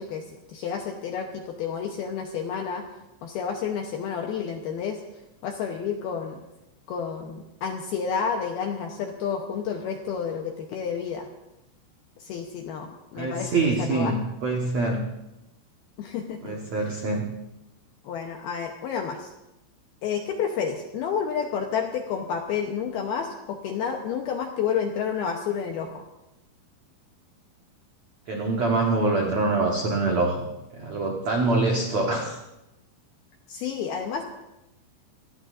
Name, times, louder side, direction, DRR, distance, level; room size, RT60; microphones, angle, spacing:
voice 1, 0.0-2.9 3.2-5.0 5.4-6.4 6.9-11.3 12.2-14.1 16.0-16.5 18.0-19.3 20.0-26.0 33.5-34.2, left 7 dB, 75° left, 3 dB, 2.3 m, -30 dB
voice 2, 13.1-15.0 16.4-17.3 28.3-30.5 30.7-32.4, right 3 dB, 90° right, 0 dB, 1.5 m, -25 dB
27.5 x 18.0 x 2.6 m, 0.94 s
omnidirectional pair, 5.7 m